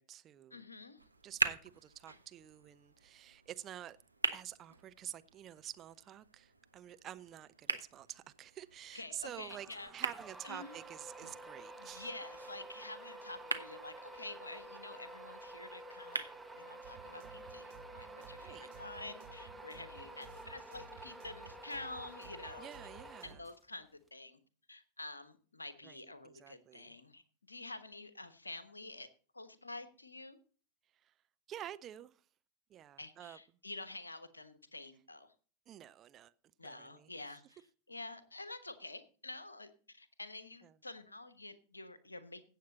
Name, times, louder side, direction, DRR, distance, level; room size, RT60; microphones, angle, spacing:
voice 1, 0.0-0.7 1.2-4.0 4.3-12.1 18.4-18.7 22.6-23.4 25.8-26.9 31.0-31.1 31.5-32.2 32.7-33.4 35.7-36.3 36.6-37.1 40.6-40.7, right 11 dB, 30° right, 0.6 m, -49 dB
voice 2, 0.5-1.0 8.9-9.9 10.4-10.8 11.8-16.2 16.5-22.7 23.2-24.4 24.7-27.2 27.5-29.1 29.3-30.4 33.0-35.3 36.6-37.6 37.9-42.4, left 2 dB, 80° left, 1.2 m, -48 dB
sound 1, 1.0-17.0, right 3 dB, 85° right, 0.9 m, -44 dB
sound 2, 9.5-23.8, right 1 dB, 5° right, 1.4 m, -50 dB
sound 3, 16.8-23.4, right 7 dB, 55° right, 2.5 m, -57 dB
16.0 x 7.6 x 4.2 m
figure-of-eight pair, 90°, 0 cm